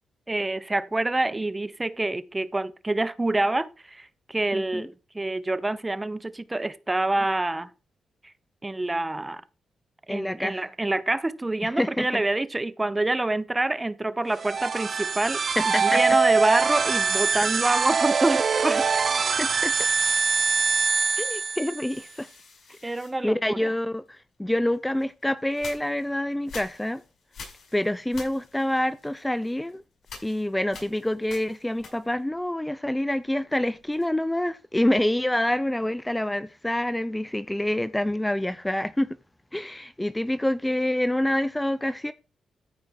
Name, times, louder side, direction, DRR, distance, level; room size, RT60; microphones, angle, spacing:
voice 1, 0.3-7.7 8.2-8.3 8.6-9.4 10.1-19.1 22.8-23.7, right 2 dB, 20° right, 0.8 m, -27 dB
voice 2, 4.5-4.8 10.1-10.6 11.6-12.2 15.6-16.0 19.4-19.7 21.2-22.3 22.7-23.0 23.2-27.0 27.7-29.8 30.2-39.1 39.5-42.1, left 1 dB, 10° left, 0.6 m, -27 dB
sound 1, 14.3-22.0, right 5 dB, 50° right, 0.5 m, -24 dB
sound 2, 21.8-24.1 24.7-32.4 32.7-34.3, left 4 dB, 65° left, 6.1 m, -48 dB
14.0 x 5.1 x 4.5 m
cardioid pair, 80°, 0 cm